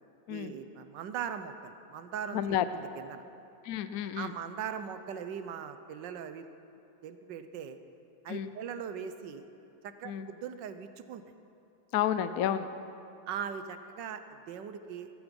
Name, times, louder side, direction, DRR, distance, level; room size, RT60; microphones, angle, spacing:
voice 1, 0.3-2.4 2.7-3.2 4.1-6.5 7.0-7.8 8.2-9.5 9.8-11.2 13.3-15.1, right 7 dB, 70° right, 10 dB, 1.3 m, -40 dB
voice 2, 2.3-2.7 3.6-4.3 8.3-8.5 10.0-10.3 11.9-12.7, left 10 dB, 80° left, 11 dB, 0.8 m, -30 dB
15.0 x 14.5 x 5.3 m, 2.7 s
omnidirectional pair, 2.2 m